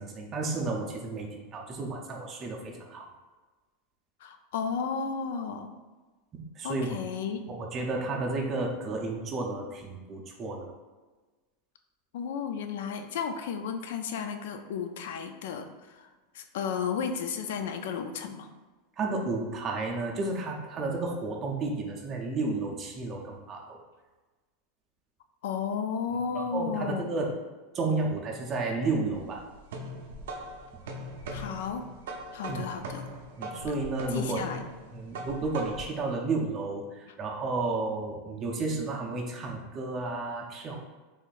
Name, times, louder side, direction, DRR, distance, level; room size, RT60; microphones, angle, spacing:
voice 1, 0.0-3.1 6.3-7.0 7.5-10.7 19.0-23.8 26.3-27.4 27.7-29.5 30.7-30.8 32.5-32.7 33.4-34.4 34.9-40.8, right 3 dB, 25° right, -1 dB, 0.5 m, -32 dB
voice 2, 4.2-5.7 6.6-7.4 12.1-16.1 16.3-18.5 25.4-27.1 31.3-31.8 32.3-33.0 34.1-34.6, left 6 dB, 75° left, 7 dB, 0.3 m, -33 dB
sound 1, 29.1-36.0, right 1 dB, 85° right, 0.5 m, -40 dB
3.8 x 3.1 x 2.4 m, 1.3 s
supercardioid pair, 150°, 0 cm